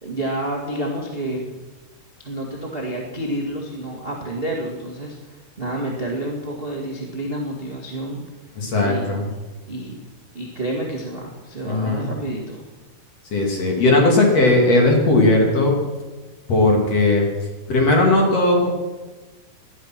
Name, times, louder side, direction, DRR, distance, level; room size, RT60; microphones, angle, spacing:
voice 1, 0.0-1.4 2.2-8.2 8.8-9.1 9.7-10.0 10.3-12.6, right 1 dB, 35° right, -1 dB, 0.9 m, -29 dB
voice 2, 8.6-9.3 11.7-12.2 13.3-15.8 16.5-17.2 17.7-18.7, left 2 dB, 45° left, 0 dB, 3.1 m, -17 dB
18.5 x 12.0 x 6.0 m, 1.2 s
omnidirectional pair, 4.7 m